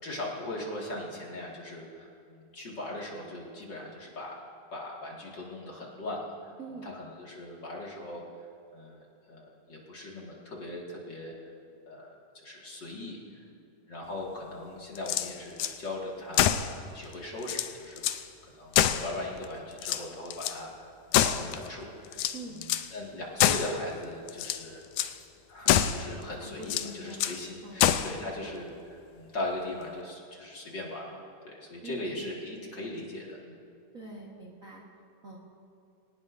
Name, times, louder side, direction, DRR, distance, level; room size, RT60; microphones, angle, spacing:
voice 1, 0.0-4.4 4.7-6.5 6.8-8.5 8.7-11.3 11.9-13.4 13.9-16.5 16.8-18.0 18.4-24.8 25.5-33.6, left 1 dB, 40° left, -3 dB, 2.2 m, -39 dB
voice 2, 6.6-6.9 22.3-22.6 26.4-27.9 28.4-28.5 31.8-32.2 33.9-34.8 35.2-35.4, right 2 dB, 65° right, -2 dB, 0.8 m, -44 dB
sound 1, 15.0-15.8 16.3-16.7 17.1-17.2 17.4-18.2 18.7-19.5 19.8-20.6 21.1-21.7 22.1-22.9 23.4-23.8 24.3-24.6 25.0-25.2 25.7-26.1 26.6-27.4 27.8-28.2, left 11 dB, 80° left, 1.9 m, -26 dB
23.0 x 18.5 x 2.6 m, 2.7 s
omnidirectional pair, 3.8 m